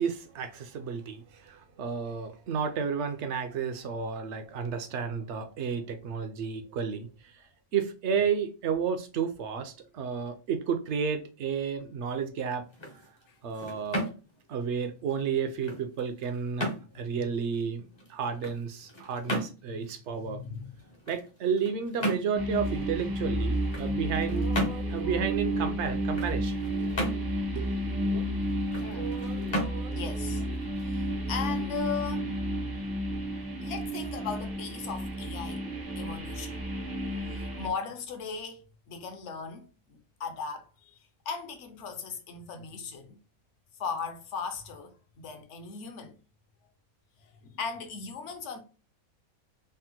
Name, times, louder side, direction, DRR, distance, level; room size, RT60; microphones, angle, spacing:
voice 1, 0.0-7.4 7.7-12.6 13.4-14.1 14.5-20.4 21.1-24.5 24.9-26.6 27.5-28.1, right 6 dB, 65° right, 0.8 m, -32 dB
sound 1, 12.6-31.4, equal, 35° left, 0.5 m, -38 dB
voice 2, 16.9-17.3 19.6-19.9 20.1-20.7 28.8-29.2 29.9-30.4 30.8-32.3 33.6-35.6 36.0-36.6 37.3-41.0 41.3-43.2 43.8-46.2 47.2-48.6, left 5 dB, 65° left, 0.9 m, -38 dB
sound 2, 22.3-37.7, equal, 35° right, 0.3 m, -31 dB
sound 3, 22.5-23.9 24.2-28.6 28.9-32.7, right 3 dB, 90° right, 1.4 m, -47 dB
3.4 x 2.1 x 2.8 m
omnidirectional pair, 1.4 m